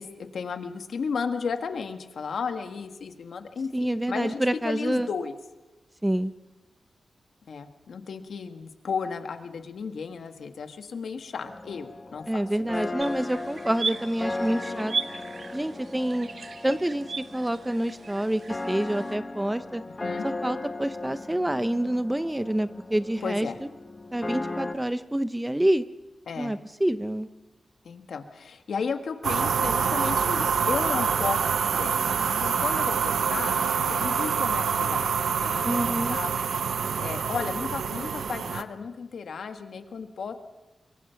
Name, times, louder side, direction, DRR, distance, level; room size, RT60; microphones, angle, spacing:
voice 1, 0.0-5.4 7.5-12.7 20.0-20.3 23.2-23.6 26.3-26.6 27.9-32.0 32.3-33.5 33.9-36.3 37.0-40.3, left 5 dB, 75° left, 7 dB, 1.6 m, -34 dB
voice 2, 3.7-5.1 6.0-6.3 12.3-14.9 15.5-16.3 16.6-19.8 20.2-23.7 24.1-25.8 26.4-27.3 35.6-36.2, right 1 dB, 10° right, 12 dB, 0.7 m, -27 dB
sound 1, 11.4-24.7, left 2 dB, 25° left, 1.2 m, -37 dB
sound 2, 13.0-19.2, right 4 dB, 55° right, 1.0 m, -37 dB
sound 3, 29.2-38.6, right 6 dB, 80° right, 0.9 m, -26 dB
24.5 x 22.5 x 5.8 m, 1.1 s
wide cardioid pair, 110°, 0 cm